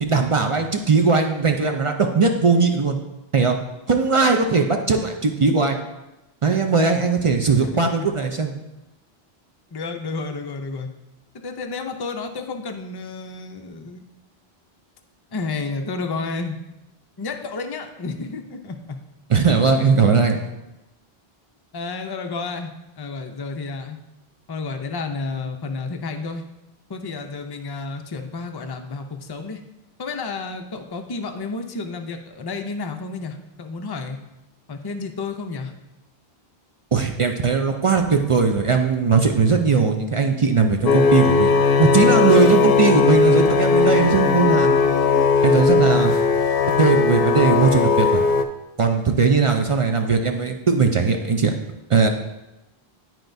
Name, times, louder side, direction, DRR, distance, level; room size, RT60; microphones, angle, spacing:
voice 1, 0.0-3.0 3.3-3.6 3.9-5.8 6.4-8.5 19.3-20.5 36.9-44.7 45.4-46.1 46.8-48.2 48.8-51.5 51.9-52.1, right 5 dB, 45° right, 4 dB, 0.4 m, -19 dB
voice 2, 7.6-8.1 9.7-10.9 11.4-14.0 15.3-16.6 17.2-19.0 21.7-24.0 24.5-26.4 26.9-29.6 30.0-34.2 34.7-35.7, left 4 dB, 35° left, 5 dB, 0.4 m, -31 dB
sound 1, 40.9-48.4, left 5 dB, 70° left, 0.8 m, -18 dB
11.0 x 4.5 x 2.6 m, 0.96 s
omnidirectional pair, 1.1 m